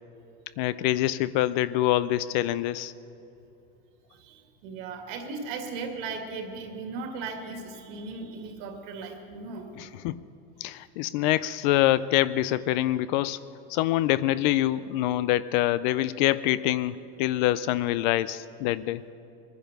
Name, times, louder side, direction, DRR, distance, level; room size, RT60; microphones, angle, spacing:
voice 1, 0.6-2.9 9.8-10.2 10.6-13.4 13.7-19.0, left 14 dB, 50° left, 16 dB, 0.4 m, -25 dB
voice 2, 4.1-9.7, right 4 dB, 60° right, 4 dB, 2.3 m, -37 dB
20.5 x 10.5 x 6.6 m, 2.9 s
supercardioid pair, 165°, 30 cm